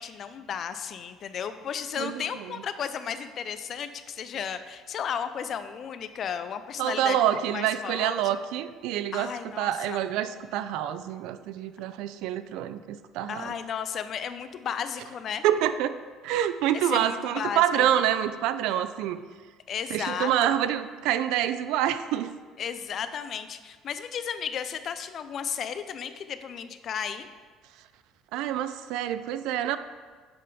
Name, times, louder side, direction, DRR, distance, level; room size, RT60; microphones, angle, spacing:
voice 1, 0.0-7.2 7.5-8.3 9.1-10.0 13.3-15.4 16.7-17.9 19.7-20.6 22.6-27.3, left 7 dB, 50° left, 11 dB, 0.4 m, -34 dB
voice 2, 6.8-9.3 9.6-13.5 15.4-16.0 16.2-19.2 19.9-22.3 28.3-29.8, right 11 dB, 75° right, 12 dB, 0.3 m, -27 dB
7.5 x 3.6 x 4.1 m, 1.5 s
cardioid pair, 105°, 0 cm